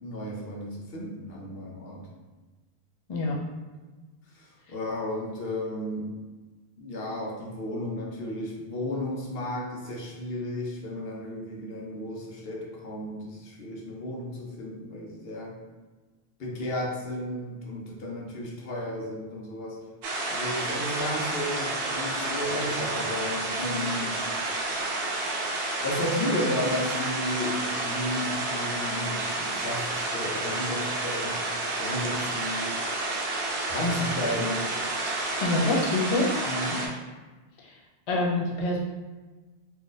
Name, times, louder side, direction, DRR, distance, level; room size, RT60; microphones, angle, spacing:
voice 1, 0.0-2.1 4.4-6.1 6.8-15.6 16.4-19.8 20.3-24.2 25.8-31.4 31.8-32.7 33.7-34.7 36.5-36.9, left 1 dB, 70° left, -2 dB, 0.9 m, -33 dB
sound 1, 20.0-36.9, right 2 dB, 75° right, 0.8 m, -30 dB
voice 2, 35.4-36.3 37.6-37.7 38.1-38.8, left 2 dB, 45° left, -2 dB, 0.5 m, -26 dB
2.6 x 2.5 x 3.8 m, 1.3 s
omnidirectional pair, 1.0 m